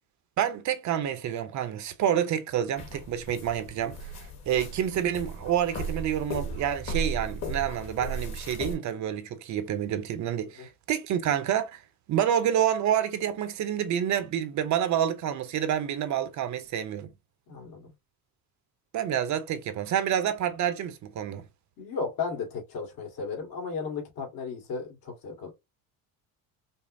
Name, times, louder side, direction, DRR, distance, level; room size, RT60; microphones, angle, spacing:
voice 1, 0.4-4.0 4.5-11.8 12.1-17.1 18.9-21.4, right 10 dB, 50° right, 0.6 m, -28 dB
sound 1, 2.8-8.7, right 2 dB, 45° left, 1.4 m, -36 dB
voice 2, 17.5-17.9 21.8-25.5, left 5 dB, 65° left, 2.0 m, -35 dB
5.2 x 2.0 x 2.5 m
cardioid pair, 130°, 38 cm